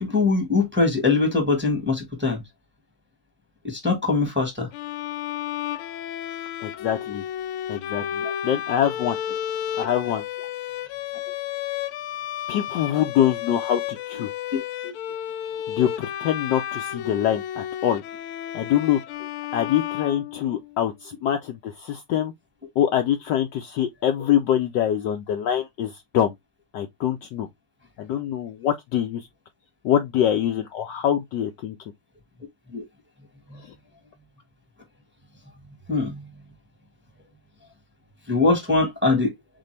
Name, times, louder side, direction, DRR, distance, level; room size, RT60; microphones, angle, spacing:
voice 1, 0.0-2.4 3.6-4.7 8.2-8.3 9.8-9.9 14.5-14.9 32.7-32.8 35.9-36.2 38.3-39.3, left 3 dB, 5° right, 1.2 m, -22 dB
Bowed string instrument, 4.7-20.8, left 11 dB, 90° left, 1.5 m, -32 dB
voice 2, 6.6-7.2 7.7-9.2 9.8-10.2 12.5-13.8 14.1-14.3 15.7-18.0 18.5-19.0 19.5-22.3 22.8-26.3 26.7-27.5 28.0-29.2 29.8-31.8, left 10 dB, 70° left, 1.1 m, -24 dB
4.2 x 3.6 x 3.2 m
omnidirectional pair, 2.3 m